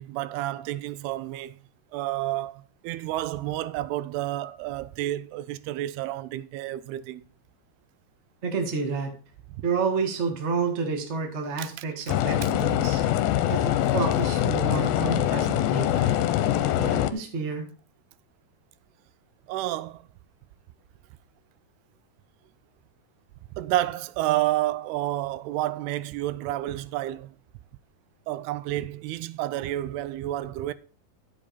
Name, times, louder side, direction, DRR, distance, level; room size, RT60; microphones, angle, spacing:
voice 1, 0.0-1.5 1.9-7.2 9.5-9.6 11.6-11.7 19.5-20.0 23.6-27.3 28.3-30.7, right 15 dB, 85° right, 2.6 m, -30 dB
voice 2, 8.4-9.1 9.6-13.0 13.5-16.2 16.8-17.6, right 4 dB, 60° right, 0.7 m, -29 dB
sound 1, 12.1-17.1, left 12 dB, 80° left, 2.3 m, -24 dB
11.0 x 7.3 x 4.3 m
omnidirectional pair, 4.5 m